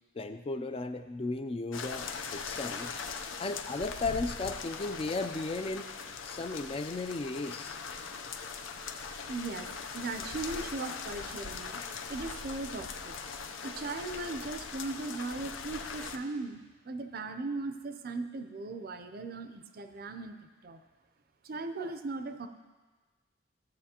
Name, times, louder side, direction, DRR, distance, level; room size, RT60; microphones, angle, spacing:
voice 1, 0.1-3.0 3.4-5.9 6.2-7.8, left 3 dB, 30° left, 9 dB, 0.3 m, -35 dB
sound 1, 1.7-16.2, left 5 dB, 90° left, 0.6 m, -41 dB
voice 2, 9.3-11.8 12.1-13.1 13.6-16.6 16.8-20.4 20.6-20.8 21.4-22.5, right 3 dB, 50° right, 9 dB, 0.5 m, -38 dB
14.0 x 7.3 x 2.9 m, 1.3 s
head